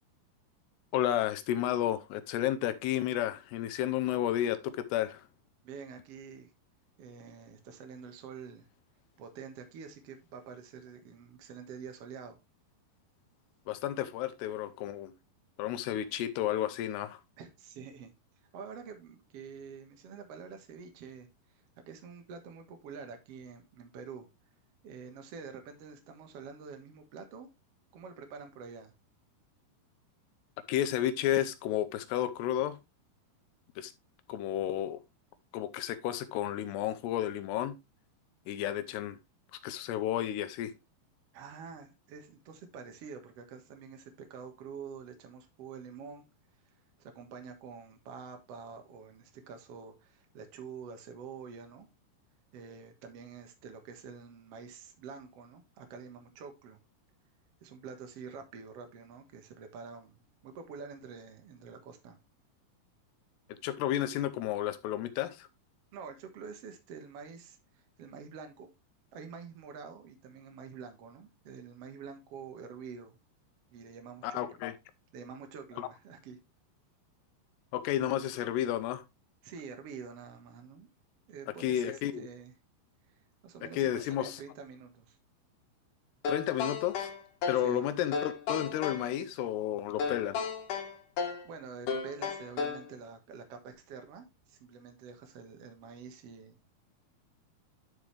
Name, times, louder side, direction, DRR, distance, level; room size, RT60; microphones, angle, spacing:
voice 1, 0.9-5.3 13.7-15.1 15.6-17.2 30.7-32.8 33.8-33.9 34.3-35.0 35.5-37.8 38.5-39.2 39.6-40.7 63.5-65.5 74.2-74.7 75.8-75.9 77.7-79.0 81.6-82.3 83.7-84.4 86.3-87.1 87.5-90.4, left 12 dB, 80° left, 2.8 m, -32 dB
voice 2, 5.6-6.5 7.0-8.7 9.2-12.4 17.4-18.1 18.5-21.3 21.8-24.3 24.8-27.5 27.9-28.9 41.3-46.2 47.0-51.9 52.5-56.8 57.6-62.2 65.9-68.7 69.1-73.1 73.7-74.6 75.1-76.4 79.4-80.9 81.3-82.5 83.4-85.2 87.6-87.8 91.4-96.7, right 6 dB, 75° right, 1.4 m, -47 dB
sound 1, 86.2-87.7 88.1-89.1 90.0-91.5 91.9-92.9, left 5 dB, 60° left, 2.4 m, -34 dB
10.5 x 5.0 x 3.3 m
omnidirectional pair, 5.0 m